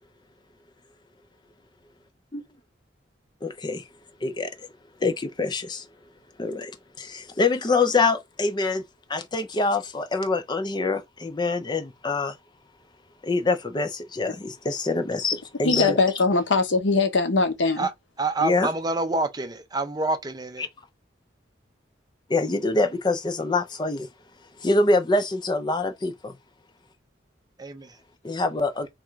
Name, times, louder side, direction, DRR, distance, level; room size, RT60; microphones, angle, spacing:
voice 1, 3.4-3.8 4.2-4.7 5.0-5.9 6.4-8.8 9.1-12.4 13.2-16.0 18.4-18.7 20.6-20.7 22.3-24.1 24.6-26.3 28.2-28.9, left 3 dB, 25° left, 0.5 m, -25 dB
voice 2, 15.6-17.9, left 3 dB, 75° left, 0.8 m, -22 dB
voice 3, 18.2-20.7 27.6-27.9, right 2 dB, 20° right, 0.5 m, -27 dB
3.6 x 2.4 x 4.5 m
head